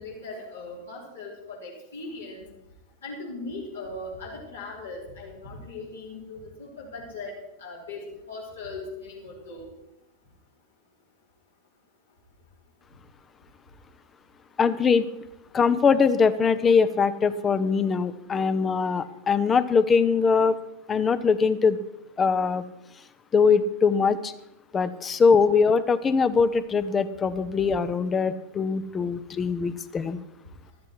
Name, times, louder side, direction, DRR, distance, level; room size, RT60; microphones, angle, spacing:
voice 1, 0.0-2.4 3.0-9.7, left 3 dB, 70° left, -4 dB, 4.3 m, -39 dB
voice 2, 14.6-15.1 15.5-20.6 20.9-21.8 22.2-22.6 23.3-24.3 24.7-30.2, left 5 dB, 20° left, 14 dB, 0.8 m, -22 dB
14.5 x 13.0 x 4.7 m, 0.89 s
figure-of-eight pair, 90°, 0 cm